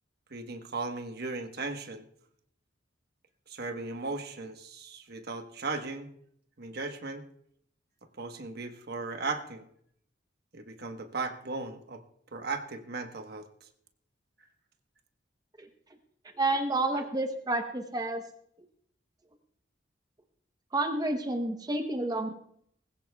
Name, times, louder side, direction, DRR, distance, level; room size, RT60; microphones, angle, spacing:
voice 1, 0.3-2.1 3.5-6.1 6.6-7.2 8.2-9.7 10.5-12.0 12.3-13.7, right 3 dB, 60° right, 5 dB, 1.2 m, -37 dB
voice 2, 16.3-18.2 20.7-22.3, right 2 dB, 20° right, 5 dB, 0.9 m, -29 dB
20.0 x 16.5 x 2.3 m, 0.68 s
head